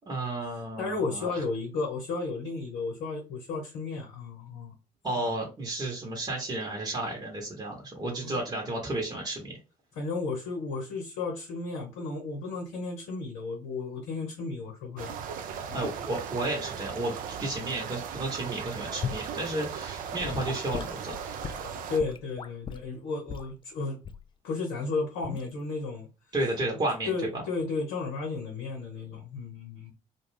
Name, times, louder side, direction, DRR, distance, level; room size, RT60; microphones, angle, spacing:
voice 1, 0.1-1.4 5.0-9.6 15.7-21.1 26.3-27.4, right 2 dB, 25° right, 1.0 m, -32 dB
voice 2, 0.8-4.7 5.2-5.3 8.2-8.4 9.9-15.2 15.7-15.9 21.9-24.0 24.4-26.1 27.1-29.9, left 3 dB, 65° left, 0.8 m, -33 dB
sound 1, 15.0-22.0, right 7 dB, 50° right, 0.5 m, -37 dB
Gurgling / Sink (filling or washing) / Liquid, 19.0-19.3 20.2-22.9 23.3-23.5 24.0-24.3 25.2-25.5, left 7 dB, 25° left, 0.3 m, -37 dB
2.4 x 2.2 x 3.2 m
figure-of-eight pair, 50°, 18 cm